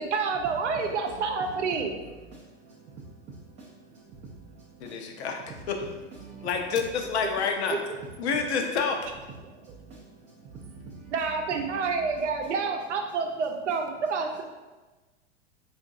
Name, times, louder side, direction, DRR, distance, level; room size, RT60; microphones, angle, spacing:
voice 1, 0.0-2.0 9.4-9.6 11.1-14.4, right 4 dB, 75° right, 0.6 m, -28 dB
voice 2, 2.7-3.7 4.1-5.0 6.2-6.5 9.6-10.0 10.4-11.1, right 4 dB, 20° right, 0.4 m, -46 dB
voice 3, 4.8-5.4 5.7-5.9 6.4-7.8 8.2-9.0, left 5 dB, 65° left, 0.7 m, -28 dB
4.3 x 2.5 x 2.5 m
hypercardioid pair, 95°, 35 cm